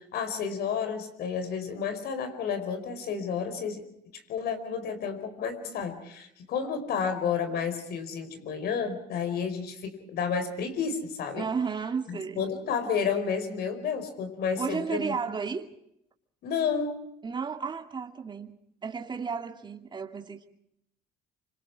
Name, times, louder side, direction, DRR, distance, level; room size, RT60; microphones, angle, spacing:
voice 1, 0.0-3.8 4.3-11.5 12.1-15.1 16.4-17.1, left 6 dB, 70° left, 4.8 m, -31 dB
voice 2, 11.4-12.4 14.6-15.7 17.2-18.6 18.8-20.5, right 5 dB, 25° right, 2.5 m, -33 dB
26.0 x 26.0 x 4.8 m
cardioid pair, 110°, 17 cm